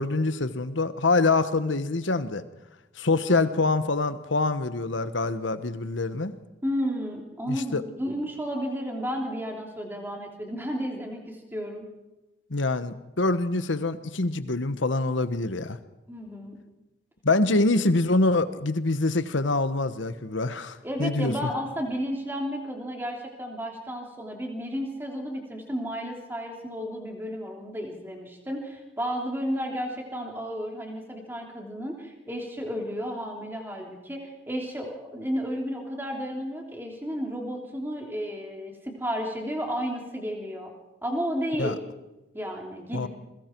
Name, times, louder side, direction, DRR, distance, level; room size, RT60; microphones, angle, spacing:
voice 1, 0.0-2.4 3.0-6.3 7.5-7.8 12.5-15.8 17.2-21.3 41.6-41.8 42.9-43.1, left 3 dB, 80° left, 12 dB, 1.2 m, -25 dB
voice 2, 6.6-11.9 16.1-16.6 20.8-40.7 41.0-41.8 42.3-43.1, equal, 10° right, 1 dB, 3.2 m, -32 dB
28.5 x 22.0 x 4.6 m, 1.0 s
head